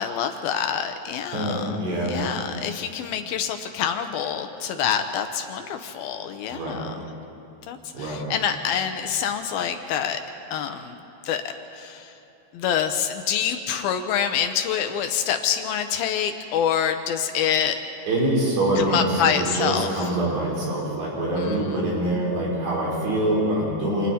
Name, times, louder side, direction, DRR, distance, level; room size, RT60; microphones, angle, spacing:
voice 1, 0.0-7.1 7.7-10.2 10.5-11.0 11.2-12.1 12.5-17.8 18.8-20.1 21.4-21.8, left 8 dB, 75° left, 7 dB, 2.4 m, -26 dB
voice 2, 1.3-2.1 6.5-6.8 7.9-8.3 18.1-19.1 19.3-24.1, right 1 dB, 75° right, -4 dB, 6.4 m, -25 dB
29.0 x 26.0 x 4.3 m, 2.7 s
omnidirectional pair, 4.8 m